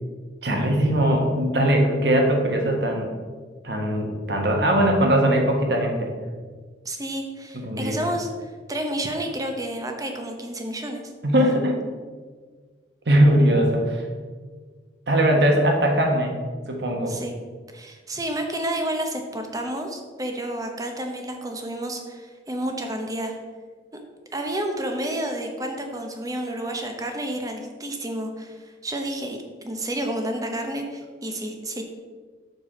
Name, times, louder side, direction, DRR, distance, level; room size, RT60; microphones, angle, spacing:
voice 1, 0.4-3.1 3.6-6.1 7.5-8.0 11.2-11.7 13.1-14.0 15.1-16.4 16.7-17.1, right 1 dB, 65° right, 2 dB, 1.2 m, -20 dB
voice 2, 6.8-11.0 17.1-17.3 17.7-23.3 24.3-31.8, right 1 dB, 20° right, 4 dB, 0.8 m, -30 dB
6.7 x 4.6 x 5.1 m, 1.5 s
head